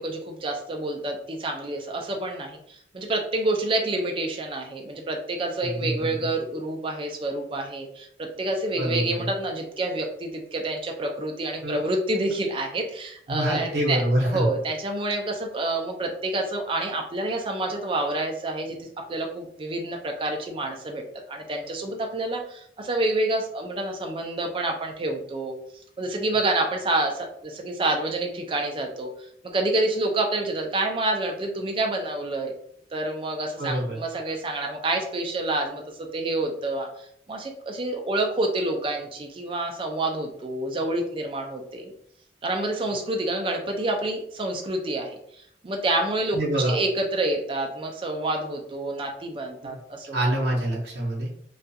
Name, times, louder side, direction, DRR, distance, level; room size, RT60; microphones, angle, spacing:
voice 1, 0.0-21.0 21.3-25.5 26.0-29.3 29.5-32.5 32.9-41.9 42.4-46.4 46.6-50.1, right 2 dB, 30° right, 3 dB, 0.3 m, -28 dB
voice 2, 8.8-9.3 11.6-11.9 13.3-14.4 33.6-34.0 46.3-46.8 49.6-49.8 50.1-51.3, right 1 dB, 65° right, -2 dB, 0.7 m, -26 dB
2.4 x 2.2 x 2.6 m, 0.68 s
head